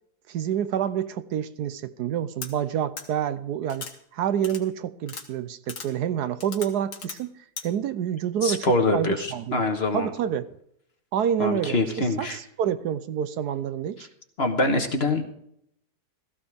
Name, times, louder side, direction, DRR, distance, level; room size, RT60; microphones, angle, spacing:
voice 1, 0.3-3.9 4.1-7.3 7.6-9.6 9.9-10.5 11.1-11.8 12.2-14.1, right 9 dB, 75° right, 1.2 m, -28 dB
sound 1, 2.4-2.5 3.0-3.1 3.7-3.9 4.4-4.6 5.1-5.2 5.7-5.9 6.4-7.2 7.6-7.7, left 5 dB, 75° left, 2.1 m, -37 dB
voice 2, 8.4-10.1 11.4-12.4 14.4-15.2, left 2 dB, 40° left, 1.5 m, -24 dB
16.0 x 14.5 x 3.5 m
omnidirectional pair, 1.8 m